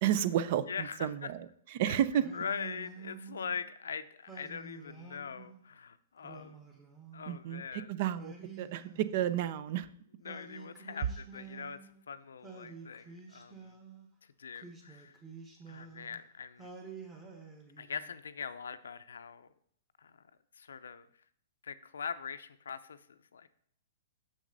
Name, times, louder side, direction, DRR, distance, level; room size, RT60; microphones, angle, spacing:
voice 1, 0.0-1.4 1.7-2.2 7.3-9.9, right 10 dB, 50° right, 14 dB, 0.5 m, -31 dB
voice 2, 0.7-1.3 1.8-2.0 2.3-6.7 7.1-7.9 10.2-11.8 12.1-13.8 14.4-15.2 15.7-16.7 17.8-19.5 20.0-20.1 20.5-21.1 21.6-23.5, left 6 dB, 85° left, 13 dB, 0.5 m, -42 dB
Singing, 2.2-3.6 4.3-5.6 6.2-7.5 8.2-9.7 10.2-12.0 12.4-14.1 14.5-16.2 16.6-18.2, right 4 dB, 15° right, 1.3 m, -50 dB
6.5 x 6.2 x 4.0 m, 0.64 s
hypercardioid pair, 140°, 0 cm